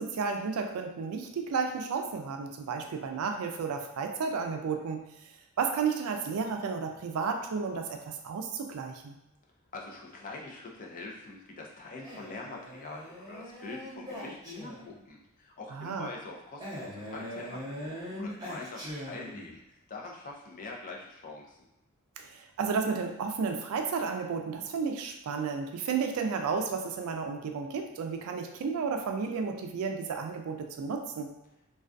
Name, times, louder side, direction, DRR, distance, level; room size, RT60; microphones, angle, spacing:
voice 1, 0.0-5.0 5.6-9.2 15.7-16.1 22.2-31.3, right 5 dB, 80° right, 5 dB, 0.3 m, -32 dB
voice 2, 9.7-19.6 19.9-21.6, left 3 dB, 40° left, -1 dB, 0.4 m, -44 dB
Male speech man speaking, 12.0-15.0 16.6-19.6, equal, 20° right, 0.6 m, -41 dB
2.3 x 2.2 x 2.5 m, 0.94 s
head